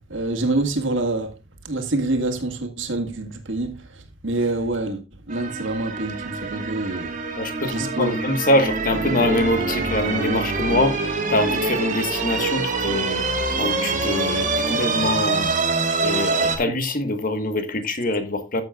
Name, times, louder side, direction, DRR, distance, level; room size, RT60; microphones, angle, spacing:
voice 1, 0.1-1.3 1.6-5.0 5.3-7.2 7.7-8.2, right 2 dB, 70° right, 1.8 m, -26 dB
sound 1, 5.3-16.6, right 3 dB, 40° right, 1.7 m, -25 dB
voice 2, 7.3-11.0 11.3-13.2 13.6-15.6 16.0-18.6, left 1 dB, 45° left, 1.4 m, -24 dB
14.5 x 7.6 x 2.4 m
head